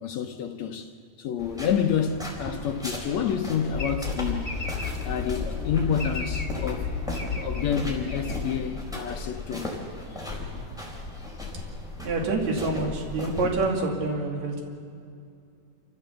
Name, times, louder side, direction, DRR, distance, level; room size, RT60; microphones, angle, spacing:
voice 1, 0.0-0.9 1.2-4.7 5.0-6.9 7.4-9.7, left 7 dB, 70° left, 1.7 m, -28 dB
sound 1, 1.4-13.6, left 2 dB, ahead, 3.8 m, -37 dB
sound 2, 3.7-9.1, left 4 dB, 50° left, 0.6 m, -32 dB
voice 2, 12.0-14.6, right 3 dB, 50° right, 3.7 m, -27 dB
28.5 x 16.0 x 7.0 m
omnidirectional pair, 4.1 m